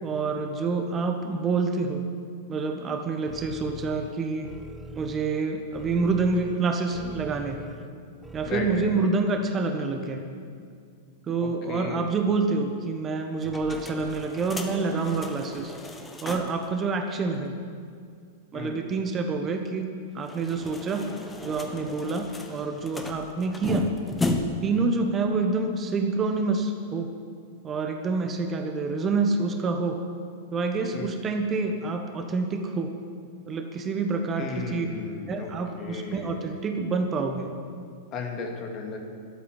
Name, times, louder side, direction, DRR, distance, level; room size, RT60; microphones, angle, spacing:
voice 1, 0.0-2.0 2.5-4.5 4.9-7.6 8.3-10.2 11.3-15.7 16.2-17.5 18.5-21.1 21.4-23.9 24.6-27.1 27.6-30.0 30.5-32.9 33.5-34.8 35.3-37.5, right 4 dB, 25° right, 5 dB, 1.3 m, -27 dB
sound 1, 3.3-9.0, right 2 dB, 10° right, 0.6 m, -44 dB
voice 2, 8.4-9.1 11.4-12.1 18.5-18.8 30.9-31.1 34.4-35.5 35.8-36.4 38.1-39.0, left 4 dB, 35° left, 2 dB, 2.4 m, -35 dB
sound 2, 13.4-16.7 17.0-17.1 17.3-17.4 20.2-24.8, left 2 dB, 15° left, 1.3 m, -34 dB
12.5 x 8.5 x 9.8 m, 2.2 s
figure-of-eight pair, 100°, 0 cm